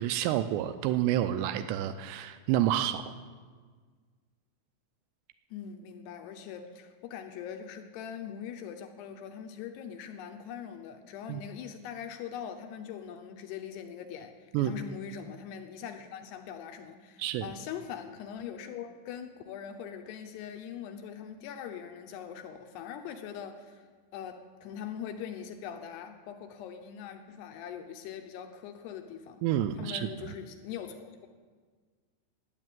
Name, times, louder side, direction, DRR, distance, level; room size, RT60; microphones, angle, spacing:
voice 1, 0.0-3.0 11.3-11.4 14.5-14.7 17.2-17.5 29.4-30.1, right 12 dB, 90° right, 9 dB, 2.5 m, -29 dB
voice 2, 5.5-23.8 24.1-29.4 29.8-31.3, left 8 dB, 75° left, 6 dB, 2.5 m, -42 dB
12.5 x 8.7 x 9.1 m, 1.5 s
omnidirectional pair, 5.6 m